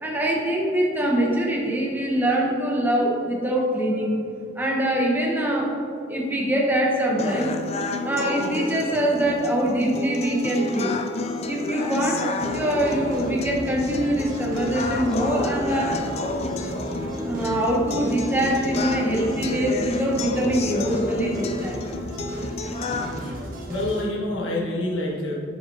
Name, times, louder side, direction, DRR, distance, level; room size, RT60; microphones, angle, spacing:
voice 1, 0.0-4.2 4.6-5.7 6.1-7.5 8.0-11.0 11.4-16.0 17.3-21.8, right 1 dB, 10° right, -2 dB, 1.0 m, -24 dB
sound 1, 7.2-23.2, left 3 dB, 35° left, 0.4 m, -30 dB
sound 2, 12.4-24.1, right 1 dB, 45° right, 1.4 m, -35 dB
voice 2, 23.2-25.3, left 1 dB, 85° left, -3 dB, 1.5 m, -28 dB
7.9 x 6.8 x 2.7 m, 2.6 s
head